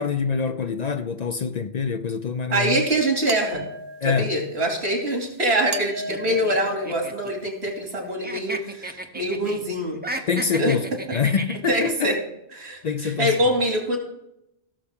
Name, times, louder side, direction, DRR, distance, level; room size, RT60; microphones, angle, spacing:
voice 1, 0.0-2.8 4.0-4.3 10.3-12.1 12.8-13.4, left 6 dB, 50° left, 0.6 m, -25 dB
voice 2, 2.5-3.6 4.0-10.0 10.6-10.7 11.7-12.2 12.6-14.0, right 1 dB, 85° right, 3.1 m, -24 dB
sound 1, 3.3-4.4 5.7-7.6, right 2 dB, 65° right, 1.0 m, -36 dB
sound 2, 6.1-8.0 8.2-9.6 9.9-11.9, right 1 dB, 10° right, 0.7 m, -34 dB
16.5 x 6.9 x 3.6 m
omnidirectional pair, 1.1 m